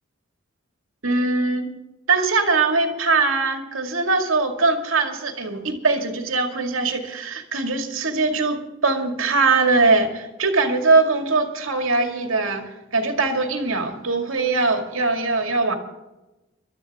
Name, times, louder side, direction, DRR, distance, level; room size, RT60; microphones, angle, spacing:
voice 1, 1.0-1.7 2.1-15.8, right 3 dB, 85° right, 4 dB, 2.3 m, -21 dB
21.5 x 12.5 x 3.7 m, 1.0 s
head